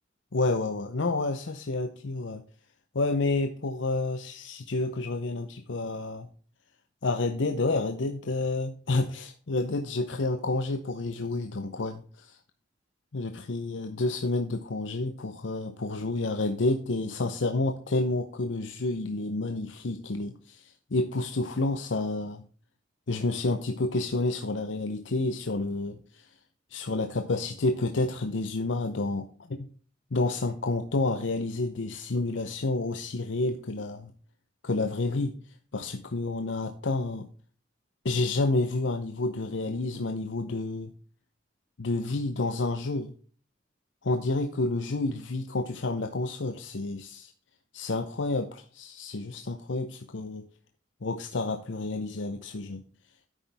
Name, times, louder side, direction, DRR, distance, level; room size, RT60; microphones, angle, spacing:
voice 1, 0.3-2.4 2.9-6.3 7.0-12.4 13.1-22.4 23.1-26.3 26.7-29.7 30.1-34.1 34.6-35.3 35.7-37.3 38.0-40.9 41.8-43.1 44.0-47.3 47.7-50.5 51.0-52.8, left 2 dB, 80° left, 0.7 m, -29 dB
10.0 x 8.2 x 3.5 m
head